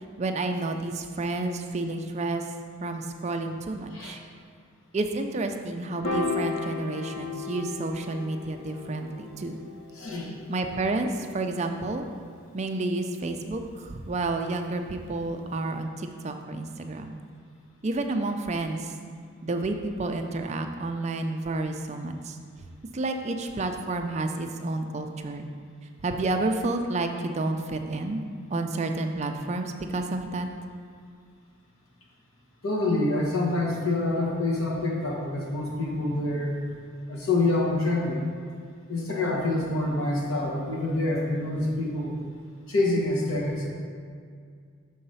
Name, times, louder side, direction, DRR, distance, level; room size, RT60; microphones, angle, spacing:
voice 1, 0.2-2.4 2.8-4.2 4.9-9.6 10.5-12.1 12.5-17.2 17.8-18.9 19.4-22.4 22.9-25.5 26.0-28.2 28.5-30.5, right 2 dB, 30° right, 5 dB, 0.4 m, -30 dB
Piano, 6.0-12.4, left 4 dB, 90° left, 1.2 m, -35 dB
voice 2, 10.0-10.3 32.6-36.6 37.1-38.2 38.9-42.2 42.7-43.7, left 2 dB, 70° left, -3 dB, 1.2 m, -26 dB
6.4 x 3.9 x 5.6 m, 2.1 s
head